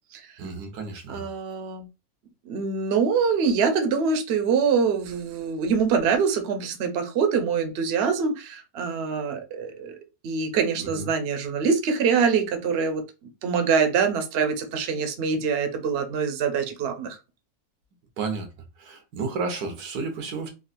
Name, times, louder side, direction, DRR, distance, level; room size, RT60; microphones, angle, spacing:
voice 1, 0.4-1.3 10.8-11.1 18.2-18.5 18.8-20.5, right 4 dB, 90° right, 1.4 m, -32 dB
voice 2, 1.1-1.9 2.5-10.0 10.2-13.0 13.4-17.2, right 5 dB, 55° right, 0.8 m, -24 dB
3.8 x 2.5 x 2.5 m
omnidirectional pair, 1.6 m